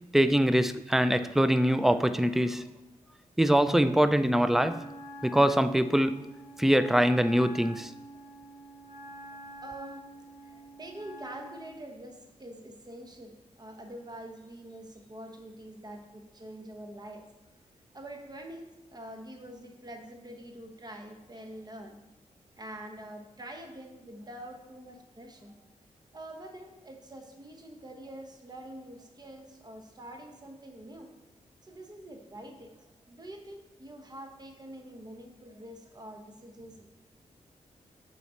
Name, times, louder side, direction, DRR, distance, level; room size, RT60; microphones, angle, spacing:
voice 1, 0.1-2.6 3.4-4.8 5.2-6.3 6.6-7.9, equal, 5° right, 0.4 m, -23 dB
Wind instrument woodwind instrument, 4.5-11.8, right 1 dB, 75° right, 2.6 m, -46 dB
voice 2, 9.3-17.3 17.9-22.0 22.6-25.7 26.1-31.1 31.6-36.9, right 1 dB, 30° right, 1.1 m, -45 dB
7.0 x 4.2 x 5.6 m
cardioid pair, 85°, 14 cm